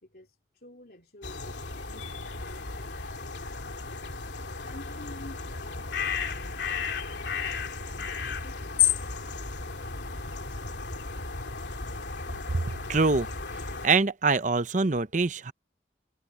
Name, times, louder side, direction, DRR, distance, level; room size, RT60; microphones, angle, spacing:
voice 1, 0.0-4.1 4.6-6.6 7.0-9.0, left 1 dB, 55° left, 3.5 m, -51 dB
sound 1, 1.2-13.9, left 6 dB, 75° left, 2.7 m, -33 dB
voice 2, 12.9-13.3 13.8-15.5, right 4 dB, 45° right, 0.8 m, -24 dB
head